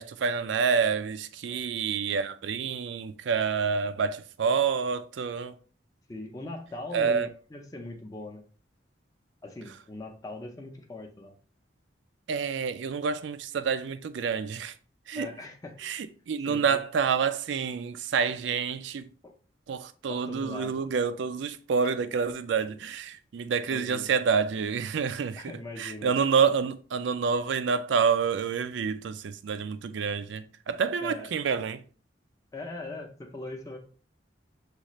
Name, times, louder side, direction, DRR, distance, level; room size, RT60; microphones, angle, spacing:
voice 1, 0.0-5.5 6.9-7.3 12.3-14.7 15.1-15.3 15.8-19.1 19.7-31.8, right 6 dB, 75° right, 0.4 m, -28 dB
voice 2, 6.1-8.4 9.4-11.3 15.1-15.8 16.5-16.8 19.2-19.3 20.1-20.8 21.8-21.9 23.6-24.1 25.4-26.2 31.0-31.3 32.5-33.8, left 2 dB, 20° left, 0.6 m, -40 dB
6.4 x 2.4 x 3.0 m
head